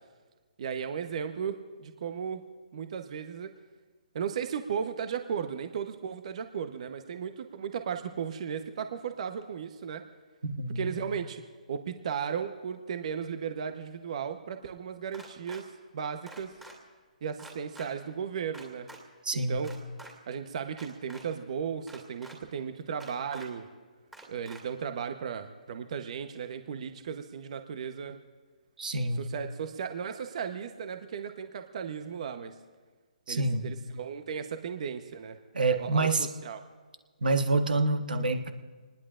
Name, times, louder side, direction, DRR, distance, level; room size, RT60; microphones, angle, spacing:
voice 1, 0.6-2.4 2.7-3.5 4.1-10.0 10.7-11.4 11.7-15.7 15.9-16.5 17.2-18.9 19.3-19.7 20.3-23.7 24.3-28.2 29.1-32.6 33.3-35.4 35.8-36.6, right 7 dB, 50° right, 7 dB, 1.0 m, -35 dB
voice 2, 10.4-10.9 19.2-19.6 28.8-29.2 33.3-33.7 35.5-36.3 37.2-38.5, right 3 dB, 80° right, 7 dB, 1.4 m, -27 dB
sound 1, 15.1-15.6 16.3-16.7 17.4-17.9 18.5-19.0 19.6-20.1 20.7-21.2 21.9-22.4 23.0-23.5 24.1-24.6, right 2 dB, 5° right, 2.4 m, -48 dB
26.5 x 20.0 x 2.5 m, 1.5 s
hypercardioid pair, 150°, 5 cm